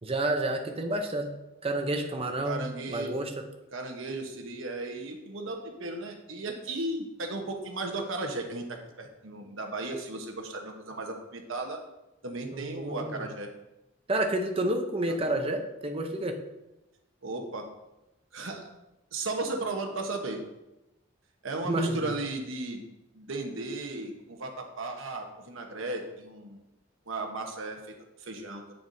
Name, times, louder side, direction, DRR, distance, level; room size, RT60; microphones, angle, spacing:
voice 1, 0.0-1.3 1.6-2.6 2.9-3.3 12.5-13.2 14.1-16.4 21.6-22.1, right 1 dB, 30° right, 4 dB, 0.7 m, -29 dB
voice 2, 2.4-3.2 3.7-11.8 12.2-13.5 15.1-15.4 17.2-17.7 18.3-18.7 19.1-20.4 21.4-22.8 23.1-26.6 27.1-28.7, right 2 dB, 75° right, 2 dB, 1.1 m, -35 dB
8.3 x 6.8 x 2.7 m, 0.97 s
head